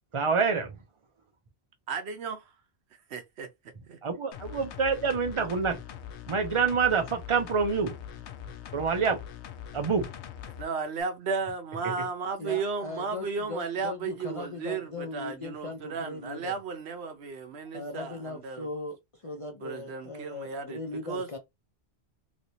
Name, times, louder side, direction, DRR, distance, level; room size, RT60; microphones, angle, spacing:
voice 1, 0.1-0.8 4.0-5.8 6.3-7.9 8.7-9.2 9.7-10.1, right 5 dB, 35° right, 0.6 m, -26 dB
voice 2, 1.9-2.4 3.1-3.5 3.9-4.0 10.6-18.7 19.6-21.3, right 5 dB, 75° right, 1.0 m, -34 dB
sound 1, 4.3-10.6 11.0-11.1, left 9 dB, 85° left, 0.9 m, -43 dB
voice 3, 12.4-16.5 17.7-21.4, left 2 dB, 40° left, 0.5 m, -39 dB
3.2 x 2.9 x 2.7 m
omnidirectional pair, 1.1 m